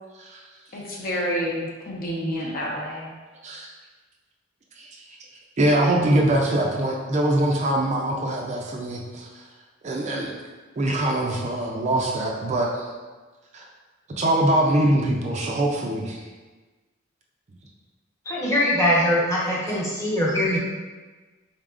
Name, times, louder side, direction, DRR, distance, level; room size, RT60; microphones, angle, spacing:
voice 1, 0.7-3.1, equal, 50° left, -3 dB, 0.7 m, -29 dB
voice 2, 5.6-9.3 9.8-10.3 10.8-12.9 13.5-13.7 14.2-16.2, right 1 dB, 35° right, -1 dB, 0.4 m, -23 dB
voice 3, 18.3-20.6, left 1 dB, 15° left, -7 dB, 1.0 m, -22 dB
4.0 x 3.5 x 2.4 m, 1.3 s
head